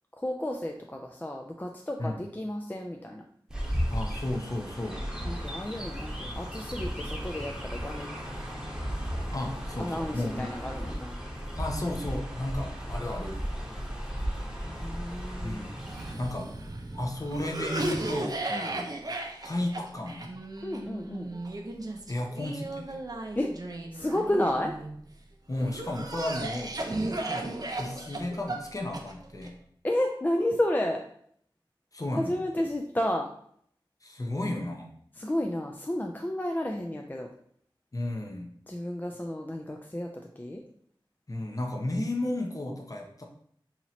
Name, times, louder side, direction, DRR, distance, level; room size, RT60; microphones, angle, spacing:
voice 1, 0.2-3.3 5.2-8.1 9.8-11.1 14.6-15.6 18.5-18.7 20.6-21.4 23.4-23.5 23.9-24.8 29.8-31.0 32.2-33.3 35.1-37.3 38.7-40.6, left 1 dB, 20° left, 2 dB, 0.3 m, -31 dB
Chirp tweet, 3.5-16.1, equal, 5° right, 0.9 m, -35 dB
voice 2, 3.9-5.0 9.3-10.5 11.6-13.4 15.4-15.7 16.2-16.5 17.0-18.9 19.4-20.4 22.1-23.0 25.5-26.8 27.2-29.5 31.9-32.4 34.0-34.9 37.9-38.5 41.3-43.2, left 1 dB, 40° left, 2 dB, 0.7 m, -33 dB
Cough, 15.8-25.0 25.6-29.5, right 2 dB, 45° right, 0.5 m, -35 dB
3.0 x 2.8 x 4.1 m, 0.65 s
wide cardioid pair, 60°, 9 cm